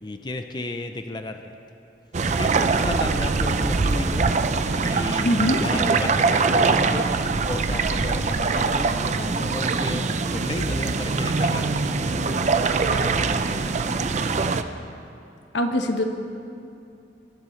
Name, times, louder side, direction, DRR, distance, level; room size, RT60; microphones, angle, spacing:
voice 1, 0.0-1.5 2.4-4.3 4.8-7.1 7.4-13.8, left 2 dB, 25° left, 6 dB, 0.6 m, -33 dB
sound 1, 2.1-14.6, right 4 dB, 40° right, 0.5 m, -23 dB
voice 2, 5.2-5.6 15.5-16.0, left 1 dB, 85° left, 5 dB, 1.2 m, -22 dB
24.0 x 11.5 x 3.2 m, 2.6 s
head